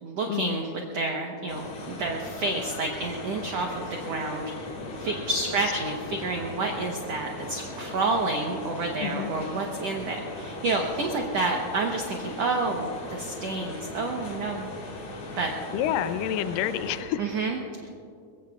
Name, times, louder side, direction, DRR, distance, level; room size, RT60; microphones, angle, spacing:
voice 1, 0.0-4.7 5.0-14.7 15.4-15.5 17.2-18.0, right 3 dB, 70° right, 1 dB, 1.6 m, -29 dB
sound 1, 1.5-17.0, left 2 dB, 50° left, 3.2 m, -38 dB
voice 2, 15.7-17.3, left 10 dB, 80° left, 11 dB, 2.1 m, -28 dB
22.5 x 22.5 x 2.4 m, 2.5 s
omnidirectional pair, 4.3 m